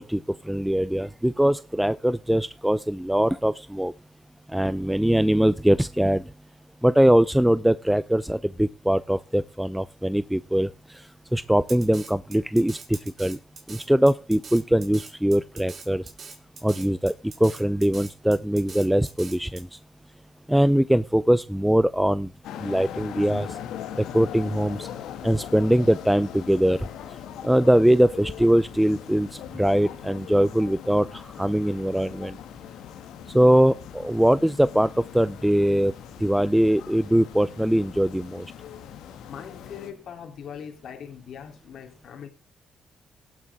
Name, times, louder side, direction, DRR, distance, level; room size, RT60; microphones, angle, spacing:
voice 1, 0.0-3.9 4.5-6.3 6.8-13.4 13.7-16.1 16.6-17.1 17.4-19.8 20.5-22.3 22.6-23.6 24.0-24.9 25.2-26.9 27.4-32.4 33.3-38.5, right 1 dB, 5° right, 15 dB, 0.5 m, -22 dB
Drum kit, 11.7-19.6, right 5 dB, 45° right, 3.7 m, -43 dB
sound 1, 22.4-39.9, left 10 dB, 85° left, 2.1 m, -40 dB
voice 2, 39.3-42.3, left 8 dB, 65° left, 3 dB, 3.1 m, -41 dB
18.0 x 8.7 x 3.6 m, 0.30 s
cardioid pair, 90°, 0 cm